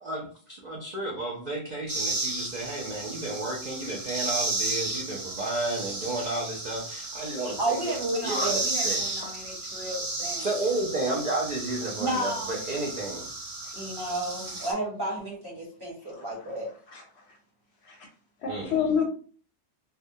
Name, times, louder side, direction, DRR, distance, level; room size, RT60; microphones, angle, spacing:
voice 1, 0.0-7.8 8.2-9.1 10.4-13.3 18.5-18.8, right 2 dB, 55° right, -2 dB, 0.5 m, -32 dB
sound 1, 1.9-14.7, right 2 dB, 80° right, 1.2 m, -33 dB
voice 2, 7.6-10.5 12.0-12.6 13.7-16.7, right 1 dB, 20° right, -6 dB, 1.0 m, -32 dB
voice 3, 16.9-17.4 17.8-18.1 18.4-19.0, left 7 dB, 70° left, 2 dB, 0.8 m, -29 dB
2.2 x 2.1 x 2.6 m, 0.43 s
omnidirectional pair, 1.3 m